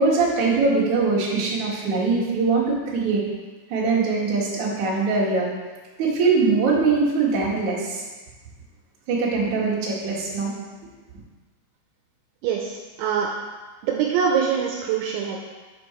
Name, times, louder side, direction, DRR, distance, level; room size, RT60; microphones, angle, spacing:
voice 1, 0.0-3.2 3.7-5.5 6.0-8.0 9.1-10.5, right 4 dB, 50° right, -7 dB, 2.7 m, -22 dB
voice 2, 12.4-13.3 13.8-15.4, right 7 dB, 80° right, -1 dB, 3.0 m, -24 dB
7.5 x 7.1 x 4.5 m, 1.3 s
omnidirectional pair, 5.6 m